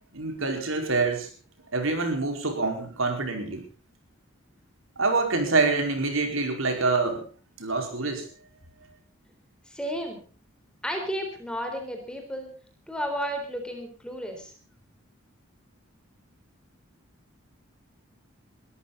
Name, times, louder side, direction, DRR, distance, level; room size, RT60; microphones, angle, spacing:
voice 1, 0.1-1.3 1.7-3.6 5.0-7.2 7.6-8.3, right 3 dB, 75° right, 4 dB, 4.8 m, -26 dB
voice 2, 9.7-10.2 10.8-12.5 12.9-14.5, equal, 5° left, 4 dB, 3.8 m, -32 dB
22.0 x 14.0 x 4.1 m, 0.38 s
head